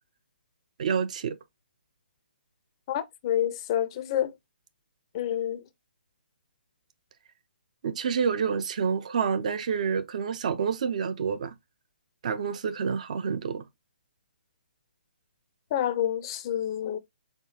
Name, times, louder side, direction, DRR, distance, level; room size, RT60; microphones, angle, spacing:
voice 1, 0.8-1.4 7.8-11.5 12.2-13.6, right 6 dB, 45° right, 0.5 m, -28 dB
voice 2, 2.9-4.3 5.1-5.6 15.7-17.0, left 11 dB, 30° left, 0.5 m, -28 dB
4.3 x 3.3 x 2.8 m
figure-of-eight pair, 135°, 5 cm